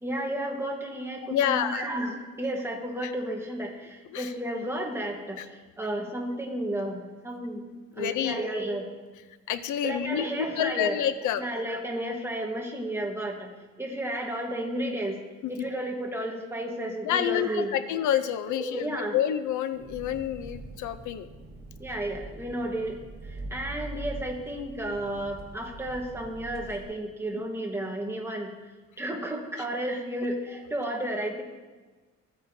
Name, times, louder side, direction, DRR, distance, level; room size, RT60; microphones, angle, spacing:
voice 1, 0.0-8.9 9.8-11.0 11.4-13.5 13.8-15.2 15.5-17.8 18.1-18.2 18.5-19.2 21.8-23.0 23.3-28.5 29.0-31.4, right 1 dB, 10° right, 1 dB, 1.2 m, -32 dB
voice 2, 1.3-1.8 3.0-3.1 4.1-4.3 5.4-5.5 8.0-8.4 9.5-11.5 15.4-15.7 17.0-21.3, left 10 dB, 80° left, 12 dB, 0.6 m, -28 dB
Engine, 19.7-26.8, right 2 dB, 35° right, 1.4 m, -43 dB
15.5 x 9.0 x 2.7 m, 1.3 s
cardioid pair, 165°, 30 cm